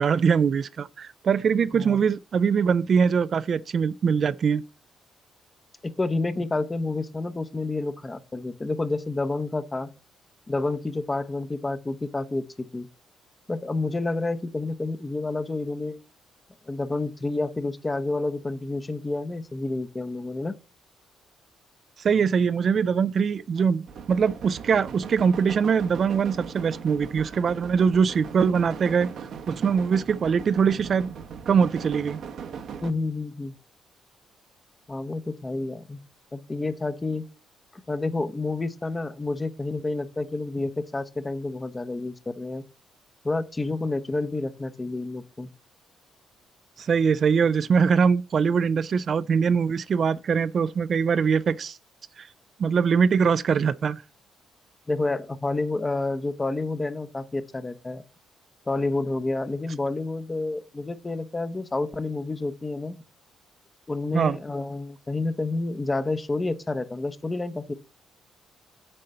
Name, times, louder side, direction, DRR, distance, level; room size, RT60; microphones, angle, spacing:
voice 1, 0.0-4.6 22.0-29.1 29.5-31.2 31.5-32.2 46.8-51.8 52.2-52.3 52.6-54.0 64.1-64.4, right 6 dB, 50° right, 0.3 m, -22 dB
voice 2, 5.8-9.9 10.5-12.9 13.5-16.0 16.7-20.5 32.8-33.6 34.9-36.0 36.3-37.3 37.7-42.6 43.2-45.5 54.9-58.0 58.7-63.0 63.9-67.7, left 2 dB, 20° left, 0.8 m, -29 dB
sound 1, 23.9-32.9, right 6 dB, 70° right, 0.9 m, -39 dB
7.6 x 4.3 x 6.6 m
cardioid pair, 90°, 0 cm